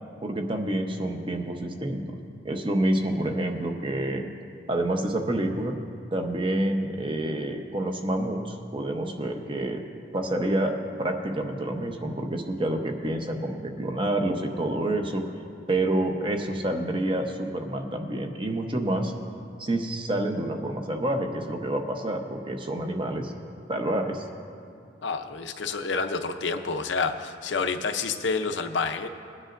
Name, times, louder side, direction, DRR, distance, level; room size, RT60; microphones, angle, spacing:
voice 1, 0.2-2.2 2.4-4.3 4.7-5.7 6.1-9.8 10.1-15.2 15.7-19.1 19.6-23.3 23.7-24.3, right 1 dB, 30° right, 4 dB, 0.9 m, -28 dB
voice 2, 25.0-29.1, left 4 dB, 85° left, 7 dB, 0.7 m, -28 dB
21.0 x 9.6 x 2.6 m, 2.5 s
head